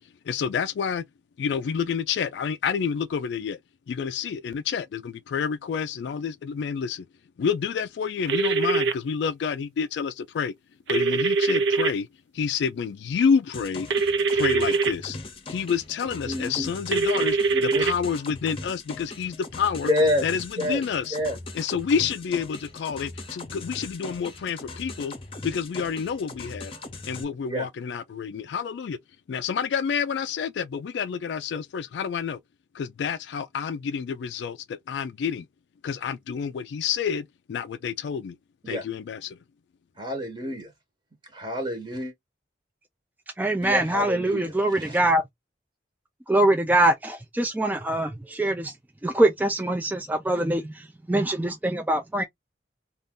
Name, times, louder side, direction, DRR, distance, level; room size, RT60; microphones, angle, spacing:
voice 1, 0.3-1.0 1.4-3.6 3.9-7.1 7.4-10.5 10.9-12.1 12.3-13.9 14.3-15.2 15.5-19.9 20.2-21.2 21.5-25.1 25.4-26.8 27.1-29.0 29.3-32.4 32.7-35.5 35.8-38.4 38.7-39.4, left 6 dB, 75° left, 0.3 m, -28 dB
sound 1, 8.3-8.9 10.9-11.9 13.9-14.9 16.9-17.9, right 4 dB, 80° right, 0.6 m, -23 dB
sound 2, 13.5-27.2, left 3 dB, 30° left, 0.7 m, -40 dB
voice 2, 16.3-16.7 17.5-17.8 19.9-20.2 20.6-20.8 21.1-21.4 27.5-27.7 38.6-38.8 40.0-40.7 41.3-42.1 43.6-45.0, left 1 dB, 25° right, 0.9 m, -28 dB
voice 3, 43.4-45.2 46.3-48.7 49.0-50.7 51.1-52.2, right 1 dB, 10° right, 0.3 m, -23 dB
2.6 x 2.4 x 3.4 m
head